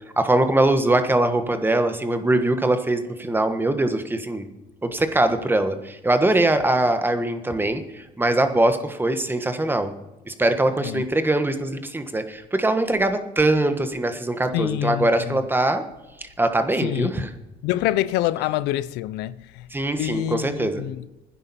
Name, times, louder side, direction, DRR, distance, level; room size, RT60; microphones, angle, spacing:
voice 1, 0.2-4.5 4.8-9.9 10.3-15.8 16.2-17.3 19.7-20.8, right 2 dB, 10° right, 1.3 m, -22 dB
voice 2, 14.5-15.4 16.8-17.3 17.6-19.7 20.0-21.0, left 15 dB, 90° left, 0.5 m, -26 dB
16.0 x 10.0 x 4.3 m
cardioid pair, 110°, 17 cm